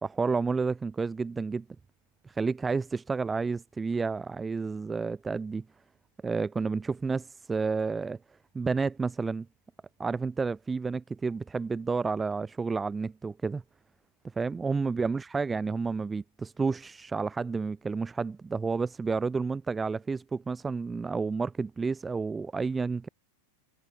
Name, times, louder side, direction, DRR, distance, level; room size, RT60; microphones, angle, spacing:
voice 1, 0.0-1.6 2.2-5.6 6.2-8.2 8.5-9.5 10.0-13.6 14.4-23.1, right 4 dB, 15° right, 1.4 m, -30 dB
figure-of-eight pair, 90°, 0 cm